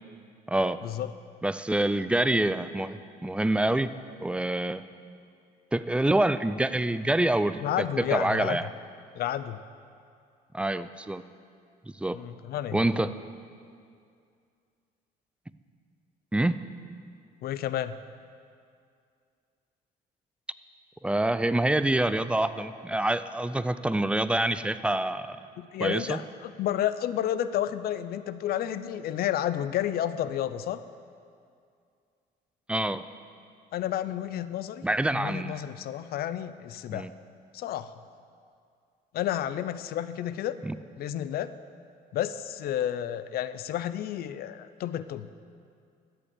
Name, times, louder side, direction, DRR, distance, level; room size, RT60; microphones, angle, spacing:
voice 1, 1.4-3.9 4.2-4.8 5.7-8.7 10.5-11.2 12.0-12.2 12.7-13.1 16.3-16.6 21.0-25.4 25.8-26.2 32.7-33.0 34.8-35.6 36.9-37.1 40.6-40.7, right 1 dB, 5° right, 13 dB, 0.4 m, -26 dB
voice 2, 7.6-8.6 9.1-9.6 12.1-12.8 17.4-18.0 25.6-30.8 33.7-34.9 35.1-37.1 37.5-37.9 39.1-40.6 40.9-41.5 42.1-45.3, left 11 dB, 65° left, 14 dB, 0.6 m, -31 dB
13.5 x 7.9 x 8.4 m, 2.3 s
cardioid pair, 110°, 17 cm